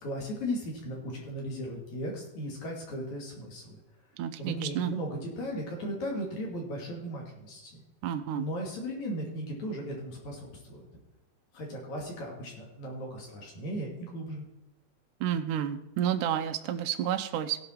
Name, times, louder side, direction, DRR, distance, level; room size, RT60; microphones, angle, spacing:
voice 1, 0.0-3.8 4.4-7.8 8.3-10.8 11.5-14.4, equal, 55° left, -1 dB, 3.7 m, -36 dB
voice 2, 4.2-4.9 8.0-8.5 15.2-17.6, right 10 dB, 80° right, 6 dB, 1.9 m, -30 dB
17.0 x 5.8 x 4.6 m, 0.95 s
omnidirectional pair, 4.2 m